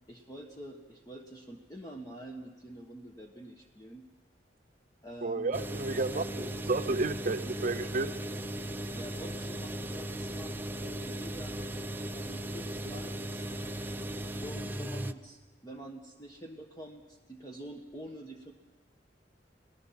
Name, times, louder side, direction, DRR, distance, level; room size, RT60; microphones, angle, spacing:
voice 1, 0.1-4.0 5.0-5.6 6.2-6.5 8.9-11.7 12.1-13.5 14.4-18.5, right 1 dB, 20° left, 1 dB, 1.3 m, -47 dB
voice 2, 5.2-8.1, right 3 dB, 45° right, 9 dB, 0.8 m, -32 dB
sound 1, 5.5-15.1, right 1 dB, 10° right, 0.7 m, -37 dB
30.0 x 18.5 x 5.8 m, 1.2 s
head